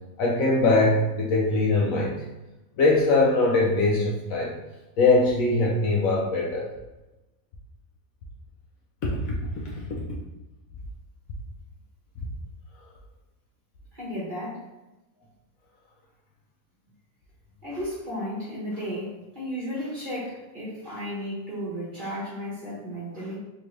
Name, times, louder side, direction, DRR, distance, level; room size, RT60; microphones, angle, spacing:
voice 1, 0.2-2.2 2.8-4.5 5.0-6.7 9.0-9.2 9.6-9.7, left 2 dB, 65° left, -4 dB, 0.9 m, -21 dB
voice 2, 13.9-14.6 17.6-23.4, equal, 35° right, -8 dB, 1.1 m, -34 dB
3.7 x 2.8 x 3.0 m, 1.0 s
omnidirectional pair, 1.8 m